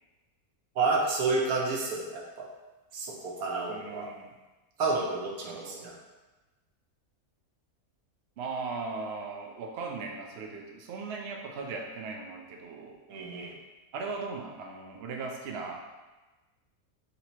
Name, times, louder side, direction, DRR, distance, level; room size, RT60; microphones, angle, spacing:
voice 1, 0.8-2.4 2.9-4.1 4.8-5.9 13.1-13.5, right 3 dB, 75° right, -1 dB, 1.3 m, -30 dB
voice 2, 3.7-4.3 5.4-5.9 8.4-13.0 13.9-15.9, right 4 dB, 60° right, 0 dB, 0.7 m, -38 dB
4.0 x 2.8 x 4.4 m, 1.1 s
omnidirectional pair, 1.6 m